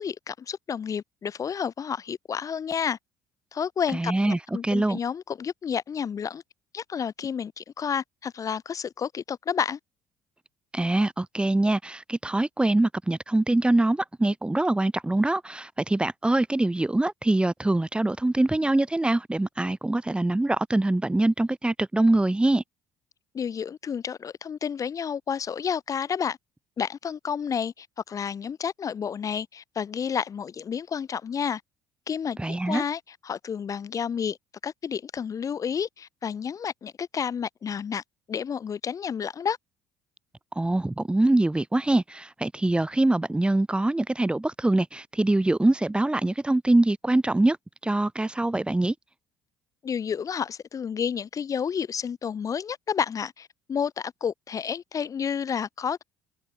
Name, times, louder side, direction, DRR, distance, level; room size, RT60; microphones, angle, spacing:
voice 1, 0.0-3.0 3.5-6.4 6.7-9.8 23.3-26.4 26.8-31.6 32.1-34.4 34.6-38.0 38.3-39.6 49.8-56.0, left 7 dB, 40° left, 2.0 m, -30 dB
voice 2, 3.9-5.0 10.7-22.6 32.4-32.8 40.6-47.6 47.8-48.9, right 2 dB, 10° right, 1.9 m, -24 dB
open air
hypercardioid pair, 55°, 9 cm